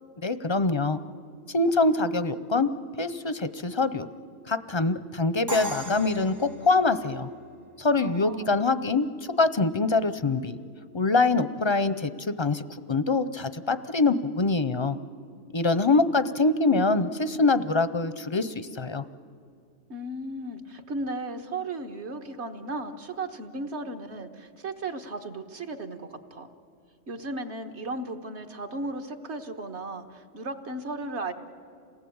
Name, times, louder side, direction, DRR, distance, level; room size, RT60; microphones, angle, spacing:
voice 1, 0.2-1.0 1.5-2.7 3.0-4.1 4.5-7.3 7.8-9.1 9.4-10.6 10.9-15.0 15.5-19.0, left 3 dB, 30° left, 13 dB, 0.5 m, -24 dB
Crash cymbal, 5.5-7.4, equal, 20° right, 0.6 m, -37 dB
voice 2, 8.0-8.5 19.9-26.5 27.1-31.3, right 2 dB, 65° right, 5 dB, 1.7 m, -35 dB
28.0 x 18.0 x 8.7 m, 2.4 s
omnidirectional pair, 1.2 m